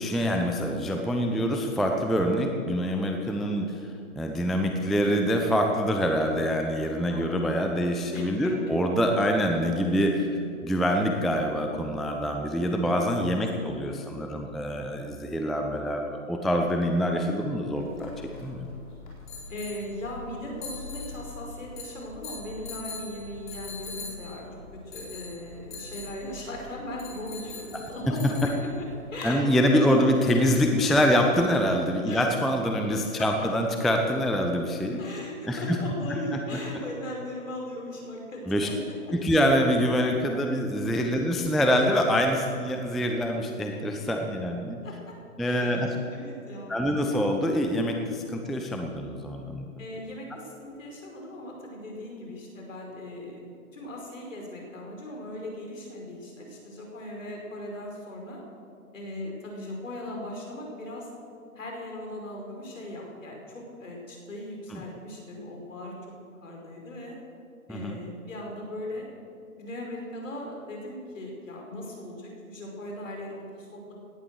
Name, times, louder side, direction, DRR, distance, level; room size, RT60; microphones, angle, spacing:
voice 1, 0.0-3.7 4.2-18.7 29.2-35.0 35.5-35.8 38.5-38.7 39.1-44.8 45.4-45.9 46.7-49.7 64.7-64.8 67.7-68.0, equal, ahead, 3 dB, 0.4 m, -25 dB
voice 2, 7.1-8.5 13.6-14.1 19.5-24.5 24.9-30.2 32.1-32.2 33.2-33.3 35.0-38.9 40.9-41.0 44.8-45.1 45.4-46.8 49.8-58.4 58.9-61.1 61.6-65.9 66.4-67.2 67.7-69.1 69.6-73.9, left 1 dB, 60° left, 0 dB, 5.2 m, -38 dB
sound 1, 17.8-29.3, left 3 dB, 30° left, 4.1 m, -42 dB
17.5 x 11.0 x 6.8 m, 2.5 s
hypercardioid pair, 175°, 44 cm